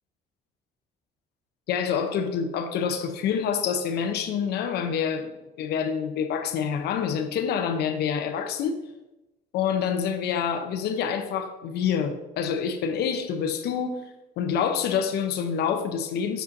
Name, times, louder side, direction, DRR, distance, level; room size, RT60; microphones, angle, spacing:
voice 1, 1.7-5.3 5.6-8.8 9.5-14.0 14.4-16.4, left 7 dB, 75° left, 0.8 m, -27 dB
7.4 x 5.4 x 2.7 m
cardioid pair, 110°, 17 cm